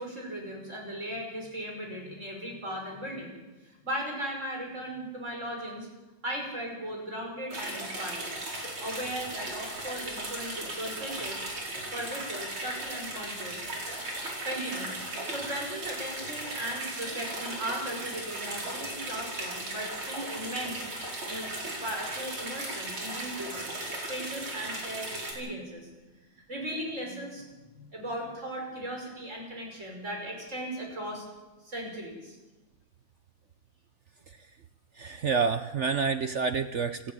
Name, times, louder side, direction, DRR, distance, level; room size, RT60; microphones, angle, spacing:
voice 1, 0.0-3.4 3.6-5.9 6.2-8.3 8.8-11.4 11.9-13.6 14.4-20.9 21.2-23.8 24.1-25.9 26.5-27.4 27.7-31.3 31.6-32.4, right 1 dB, 35° right, 0 dB, 6.2 m, -37 dB
sound 1, 7.5-25.3, right 1 dB, 80° right, 5.6 m, -37 dB
voice 2, 35.0-37.1, right 5 dB, 65° right, 10 dB, 0.7 m, -28 dB
27.5 x 11.5 x 8.8 m, 1.1 s
omnidirectional pair, 2.2 m